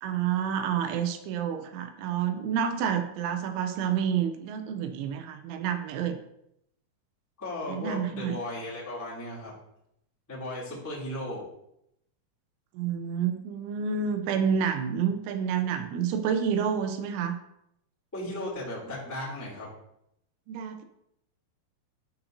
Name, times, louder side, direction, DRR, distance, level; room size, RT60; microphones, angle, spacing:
voice 1, 0.0-6.2 7.7-8.4 12.7-17.4 20.5-20.8, right 7 dB, 85° right, 8 dB, 3.1 m, -29 dB
voice 2, 7.4-9.5 10.3-11.4 18.1-19.7, left 1 dB, 5° left, -7 dB, 1.2 m, -36 dB
12.5 x 5.9 x 2.6 m, 0.79 s
omnidirectional pair, 5.4 m